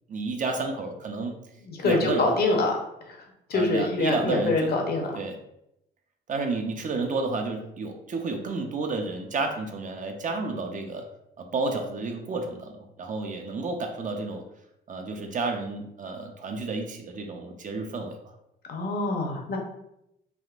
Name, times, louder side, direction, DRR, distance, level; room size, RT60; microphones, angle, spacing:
voice 1, 0.1-1.3 1.8-2.3 3.5-4.7 5.2-5.4 6.3-11.0 11.4-12.7 13.0-14.4 14.9-18.2, right 3 dB, 40° right, 3 dB, 0.5 m, -31 dB
voice 2, 1.7-2.8 3.1-3.2 3.5-5.1 18.7-19.6, left 2 dB, 50° left, 2 dB, 0.7 m, -25 dB
3.5 x 2.4 x 2.4 m, 0.82 s
cardioid pair, 90°, 20 cm